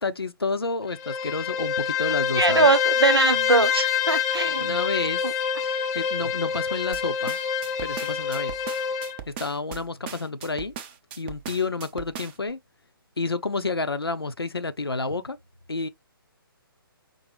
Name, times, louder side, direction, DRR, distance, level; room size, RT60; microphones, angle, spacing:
voice 1, 0.0-2.7 4.5-5.3 5.9-7.4 7.8-8.5 9.3-10.7 11.2-12.6 13.2-15.4 15.7-15.9, left 3 dB, 85° left, 0.6 m, -29 dB
Bowed string instrument, 0.9-9.2, left 7 dB, 25° left, 0.8 m, -26 dB
voice 2, 2.4-4.7 5.2-5.3 5.7-5.8, right 3 dB, 85° right, 0.6 m, -22 dB
sound 1, 6.9-12.5, right 9 dB, 25° right, 0.5 m, -39 dB
5.3 x 2.1 x 3.2 m
figure-of-eight pair, 135°, 12 cm